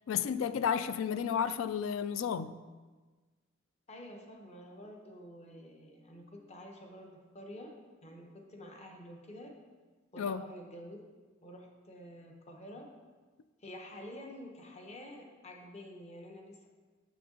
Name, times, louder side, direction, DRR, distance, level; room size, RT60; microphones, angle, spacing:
voice 1, 0.1-2.6 10.2-10.4, left 7 dB, 75° left, 0.3 m, -32 dB
voice 2, 3.9-9.5 10.1-11.0 11.4-12.9 13.6-16.7, equal, 35° left, 0.9 m, -49 dB
6.8 x 6.4 x 3.8 m
head